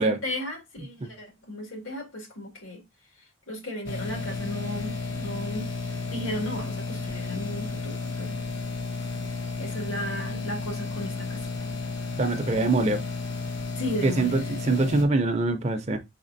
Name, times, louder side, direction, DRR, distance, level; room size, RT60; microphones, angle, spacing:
voice 1, 0.0-2.8 3.5-5.6 6.1-8.4 9.6-11.7 13.8-14.5, left 1 dB, 90° left, 1.9 m, -35 dB
sound 1, 3.9-15.1, left 3 dB, 65° left, 1.0 m, -33 dB
voice 2, 12.2-13.0 14.0-16.0, right 2 dB, 35° right, 0.5 m, -24 dB
4.3 x 4.2 x 2.6 m
head